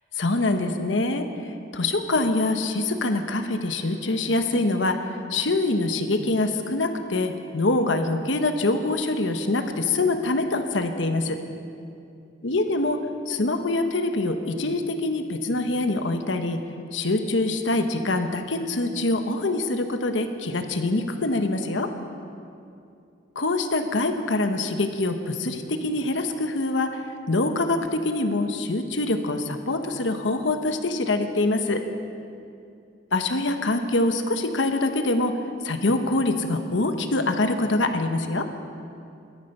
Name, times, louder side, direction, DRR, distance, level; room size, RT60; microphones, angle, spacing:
voice 1, 0.2-5.0 5.3-11.4 12.4-13.0 13.3-16.6 16.9-21.9 23.3-31.8 33.1-35.3 35.6-38.5, left 2 dB, 75° left, 7 dB, 1.1 m, -24 dB
17.0 x 12.5 x 5.5 m, 2.5 s
head